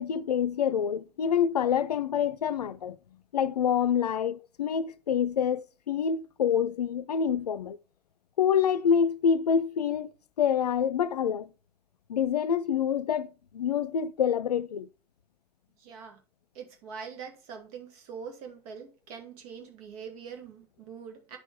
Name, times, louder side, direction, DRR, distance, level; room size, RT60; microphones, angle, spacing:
voice 1, 0.0-3.0 3.3-7.8 8.4-10.1 10.4-11.5 12.1-14.9, left 7 dB, 80° left, 0.4 m, -27 dB
voice 2, 15.8-16.2 16.5-21.4, right 6 dB, 65° right, 1.8 m, -43 dB
9.7 x 6.4 x 3.6 m
figure-of-eight pair, 55°, 20 cm